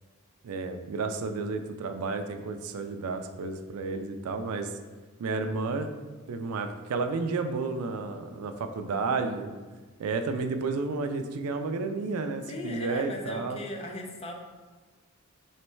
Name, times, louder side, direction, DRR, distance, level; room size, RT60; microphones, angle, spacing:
voice 1, 0.4-4.7 5.2-5.9 6.3-9.6 10.0-13.6, right 4 dB, 75° right, 7 dB, 0.4 m, -31 dB
voice 2, 12.5-14.3, left 1 dB, 25° left, 2 dB, 0.4 m, -37 dB
3.2 x 3.0 x 4.4 m, 1.3 s
head